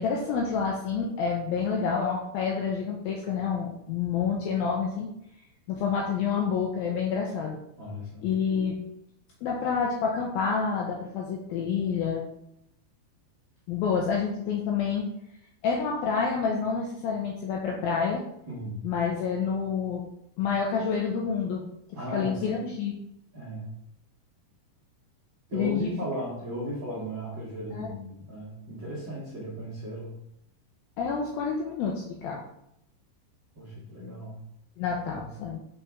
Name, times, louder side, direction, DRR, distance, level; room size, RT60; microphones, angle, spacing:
voice 1, 0.0-5.1 5.7-7.6 8.2-8.8 9.4-12.3 13.7-15.1 15.6-18.2 18.8-20.0 20.4-21.6 22.1-23.0 25.5-25.9 27.7-27.9 31.0-32.4 34.8-35.6, left 6 dB, 80° left, -1 dB, 2.1 m, -28 dB
voice 2, 7.8-8.3 18.5-18.8 21.9-22.5 23.3-23.7 25.5-30.2 33.5-34.4 35.0-35.3, equal, 60° right, -7 dB, 1.2 m, -36 dB
6.6 x 6.1 x 3.5 m, 0.79 s
omnidirectional pair, 5.1 m